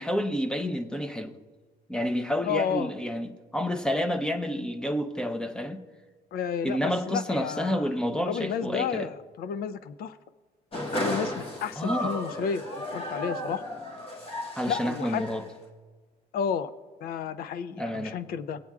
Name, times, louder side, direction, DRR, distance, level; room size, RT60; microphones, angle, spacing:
voice 1, 0.0-1.3 1.9-5.8 6.6-9.1 11.8-12.2 14.6-15.4 17.8-18.1, equal, 5° left, 0.7 m, -29 dB
voice 2, 2.4-2.9 6.3-7.9 8.2-10.2 11.0-13.6 14.7-15.3 16.3-16.7 17.0-18.6, left 7 dB, 65° left, 0.5 m, -31 dB
sound 1, 10.7-15.6, left 1 dB, 35° left, 1.6 m, -34 dB
20.5 x 8.6 x 2.4 m
cardioid pair, 110°, 17 cm